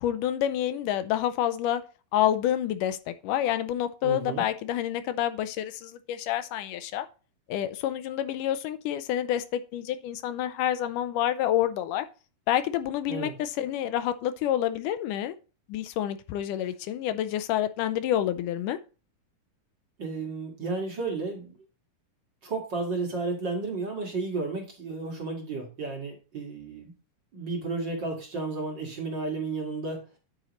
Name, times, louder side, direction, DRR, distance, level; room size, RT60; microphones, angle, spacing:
voice 1, 0.0-1.8 2.1-7.1 7.5-12.1 12.5-15.4 15.7-18.8, left 11 dB, 80° left, 11 dB, 2.2 m, -28 dB
voice 2, 4.0-4.4 13.1-13.3 20.0-21.5 22.4-26.9 27.3-30.0, right 3 dB, 40° right, 1 dB, 2.2 m, -32 dB
9.8 x 8.8 x 3.1 m, 0.33 s
omnidirectional pair, 3.8 m